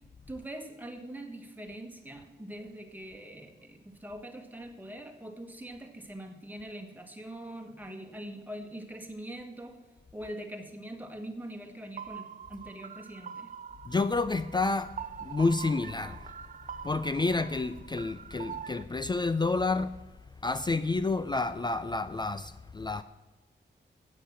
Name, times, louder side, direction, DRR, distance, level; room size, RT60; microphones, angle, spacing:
voice 1, 0.3-9.8 10.1-13.5, right 1 dB, 10° right, 1.4 m, -43 dB
sound 1, 12.0-18.8, right 8 dB, 45° right, 0.4 m, -44 dB
voice 2, 13.8-14.9 15.2-16.3 16.8-19.9 20.4-23.0, left 3 dB, 25° left, 0.4 m, -29 dB
9.9 x 8.4 x 7.4 m
wide cardioid pair, 140°, 18 cm